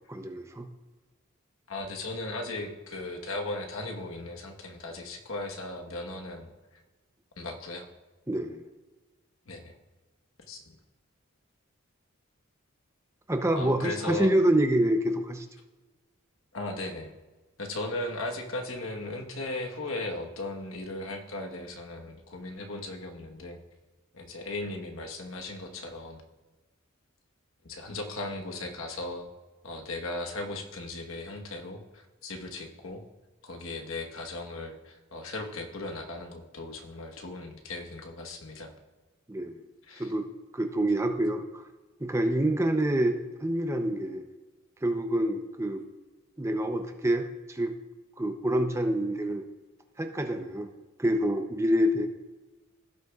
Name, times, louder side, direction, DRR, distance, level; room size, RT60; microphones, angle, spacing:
voice 1, 0.1-0.7 8.3-8.6 13.3-15.4 39.3-39.5 40.0-40.3 40.5-41.4 42.0-44.2 44.8-45.8 46.4-47.7 48.2-49.4 50.0-50.7 51.0-52.1, right 1 dB, 15° right, 6 dB, 0.6 m, -27 dB
voice 2, 1.7-6.5 7.4-7.9 9.5-9.7 10.5-10.7 13.6-14.3 16.5-17.1 17.6-23.6 24.1-26.2 27.6-29.3 29.6-33.0 33.4-38.7 39.9-40.1, left 2 dB, 80° left, 2 dB, 1.2 m, -37 dB
16.5 x 6.7 x 2.4 m, 1.2 s
head